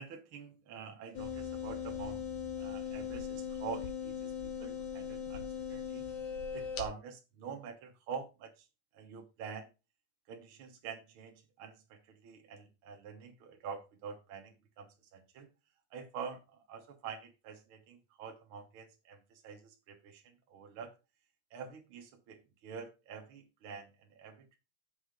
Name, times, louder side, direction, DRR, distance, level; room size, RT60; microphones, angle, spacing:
voice 1, 0.0-2.3 2.6-6.0 6.5-8.6 8.9-9.7 10.3-15.5 15.9-20.9 21.5-24.6, right 6 dB, 60° right, 1.4 m, -46 dB
sound 1, 1.1-6.8, left 7 dB, 70° left, 2.9 m, -39 dB
6.8 x 6.5 x 5.1 m
omnidirectional pair, 3.8 m